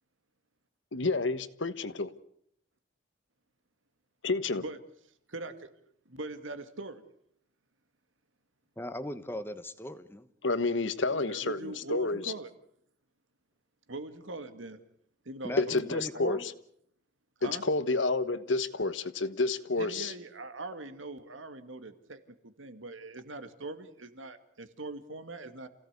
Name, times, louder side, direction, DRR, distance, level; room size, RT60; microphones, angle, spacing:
voice 1, 0.9-2.1 4.2-4.6 10.4-12.3 15.6-16.5 17.4-20.1, left 3 dB, 70° left, 13 dB, 1.3 m, -29 dB
voice 2, 4.2-4.8 5.3-5.7 6.1-7.0 11.1-12.5 13.9-14.8 15.3-16.4 17.4-17.6 19.8-25.7, right 2 dB, 80° right, 9 dB, 2.1 m, -42 dB
voice 3, 8.8-10.3 15.4-16.4, left 1 dB, 10° left, 11 dB, 1.2 m, -38 dB
28.0 x 17.0 x 8.2 m, 0.71 s
head